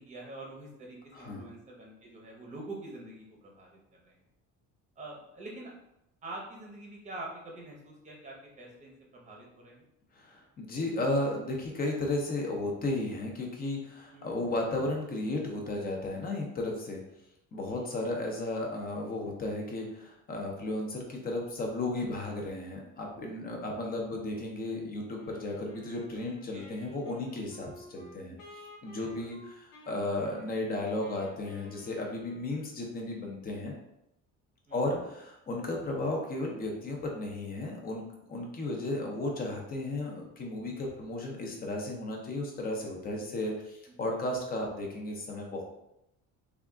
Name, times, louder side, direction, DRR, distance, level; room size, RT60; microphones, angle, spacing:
voice 1, 0.0-4.2 5.0-5.7 6.2-9.9 14.1-14.3 17.6-17.9 26.5-26.8 28.9-29.3 34.7-34.8, right 2 dB, 25° right, -1 dB, 0.7 m, -45 dB
voice 2, 1.1-1.5 10.1-17.0 17.5-33.7 34.7-45.6, left 2 dB, 30° left, 0 dB, 0.6 m, -34 dB
Wind instrument woodwind instrument, 25.2-32.9, left 1 dB, 90° left, 1.2 m, -53 dB
3.4 x 2.4 x 3.6 m, 0.82 s
cardioid pair, 180°, 32 cm